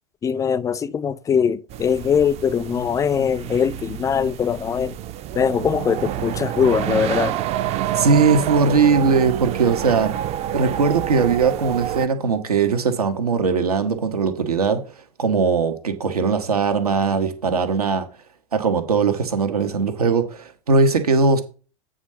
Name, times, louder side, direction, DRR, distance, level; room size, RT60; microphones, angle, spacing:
voice 1, 0.2-5.0 5.3-7.4, left 7 dB, 15° left, 0.4 m, -21 dB
sound 1, 1.7-12.1, right 12 dB, 35° right, 0.5 m, -28 dB
voice 2, 8.0-10.1 10.5-14.8 15.2-18.1 18.5-21.4, right 5 dB, 75° right, 1.2 m, -20 dB
8.6 x 3.8 x 5.5 m
figure-of-eight pair, 80°, 19 cm